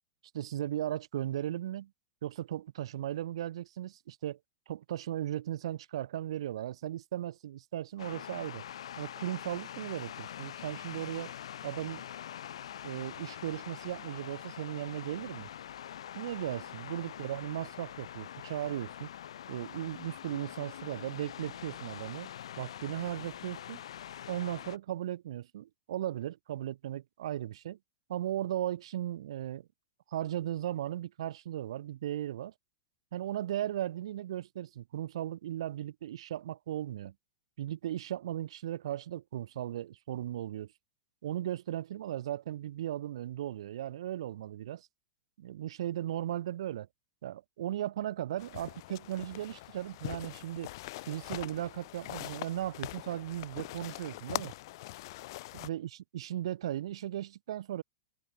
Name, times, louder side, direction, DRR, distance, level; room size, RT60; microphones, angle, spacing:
voice 1, 0.3-1.9 2.2-4.4 4.7-8.6 9.0-11.3 11.6-12.1 12.8-15.5 16.2-19.1 19.5-22.3 22.6-23.8 24.3-27.8 28.1-29.7 30.1-32.5 33.1-37.1 37.6-40.7 41.2-44.9 45.4-46.9 47.2-50.7 51.1-54.5 55.5-57.8, right 12 dB, 75° right, 4.0 m, -37 dB
sound 1, 8.0-24.8, left 10 dB, 90° left, 2.9 m, -44 dB
sound 2, 48.4-55.7, left 19 dB, 55° left, 0.9 m, -43 dB
supercardioid pair, 155°, 3 cm